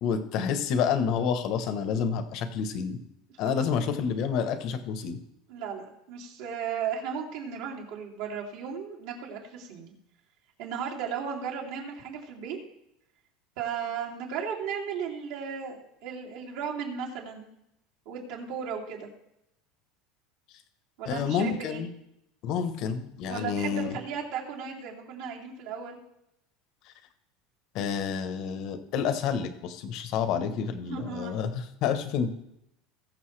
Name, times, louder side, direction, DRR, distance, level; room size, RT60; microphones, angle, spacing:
voice 1, 0.0-3.0 3.4-5.2 21.0-21.9 22.4-23.9 27.7-32.3, left 7 dB, 45° left, 10 dB, 1.1 m, -29 dB
voice 2, 5.5-9.9 10.6-12.6 13.6-17.5 18.0-19.1 21.0-21.8 23.3-26.0 30.9-31.4, right 7 dB, 65° right, -2 dB, 3.0 m, -35 dB
20.5 x 6.8 x 3.3 m, 0.81 s
cardioid pair, 170°, 0 cm